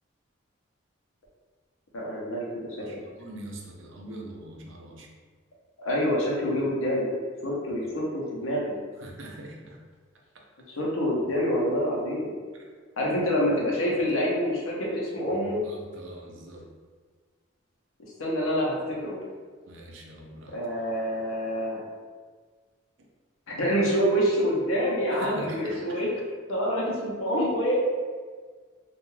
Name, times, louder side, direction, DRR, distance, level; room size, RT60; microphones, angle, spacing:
voice 1, 1.9-3.0 5.8-7.1 7.4-8.6 10.8-12.4 13.0-15.6 18.2-19.2 20.5-21.8 23.5-26.1 26.5-27.8, equal, 85° left, -3 dB, 0.7 m, -26 dB
voice 2, 2.8-5.1 7.8-7.9 9.0-9.8 10.3-10.4 12.5-12.7 15.3-16.7 19.7-20.6 25.1-26.2, right 1 dB, 65° right, 0 dB, 0.5 m, -43 dB
2.3 x 2.3 x 3.1 m, 1.5 s
head